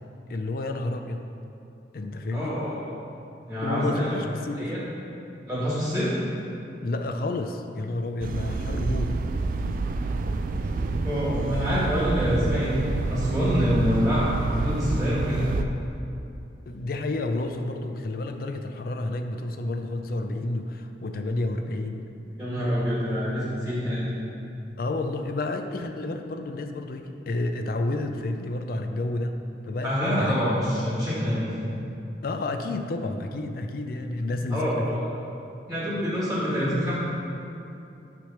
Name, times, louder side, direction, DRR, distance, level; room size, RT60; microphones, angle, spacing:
voice 1, 0.3-1.2 1.9-2.6 3.6-4.7 6.8-9.2 16.7-22.1 24.8-30.3 32.2-35.0, left 2 dB, 50° left, 5 dB, 0.4 m, -30 dB
voice 2, 2.3-2.9 3.5-4.2 4.5-4.8 5.5-6.1 11.0-15.5 22.3-24.0 29.8-31.6 34.5-35.0 35.7-37.0, equal, ahead, -9 dB, 1.5 m, -26 dB
sound 1, 8.2-15.7, right 3 dB, 50° right, 0.3 m, -28 dB
9.2 x 3.3 x 5.7 m, 2.7 s
head